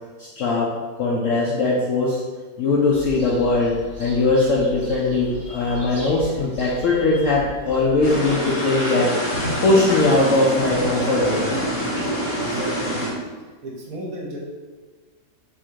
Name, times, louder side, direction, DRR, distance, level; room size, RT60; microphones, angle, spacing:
voice 1, 0.2-0.7 1.0-2.2 2.6-9.1 9.6-11.5, left 2 dB, 70° left, -4 dB, 0.7 m, -20 dB
sound 1, 2.9-8.3, equal, 30° right, 0.9 m, -38 dB
sound 2, 8.0-13.1, equal, 35° left, 0.8 m, -25 dB
voice 2, 12.3-13.0 13.6-14.4, right 1 dB, 60° right, -3 dB, 1.1 m, -33 dB
3.6 x 2.5 x 4.5 m, 1.4 s
omnidirectional pair, 1.8 m